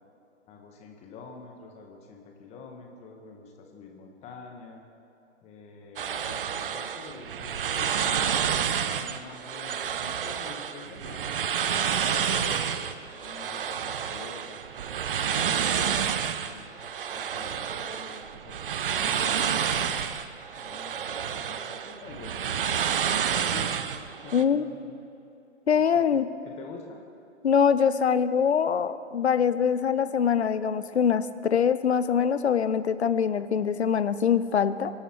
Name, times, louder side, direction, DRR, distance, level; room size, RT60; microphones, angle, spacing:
voice 1, 0.5-4.8 5.4-11.4 12.0-14.7 15.3-20.1 20.6-22.6 23.4-23.8 24.1-25.0 25.7-27.0, left 4 dB, 15° left, 2 dB, 1.7 m, -46 dB
sound 1, 6.0-24.4, right 8 dB, 45° right, 0.7 m, -29 dB
voice 2, 24.3-24.6 25.7-26.3 27.4-34.9, left 7 dB, 60° left, 14 dB, 0.8 m, -23 dB
23.5 x 11.5 x 4.6 m, 2.7 s
figure-of-eight pair, 120°, 37 cm